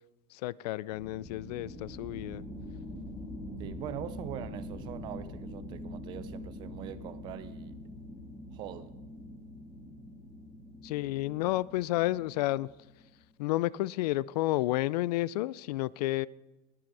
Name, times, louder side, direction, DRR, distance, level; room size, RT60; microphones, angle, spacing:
voice 1, 0.3-2.4 10.8-12.7 13.4-16.3, left 17 dB, 75° left, 0.4 m, -31 dB
sound 1, 0.9-13.2, left 1 dB, 10° left, 2.6 m, -44 dB
voice 2, 3.6-7.8 8.5-8.9, right 12 dB, 20° right, 0.4 m, -42 dB
21.0 x 7.7 x 4.7 m
supercardioid pair, 180°, 21 cm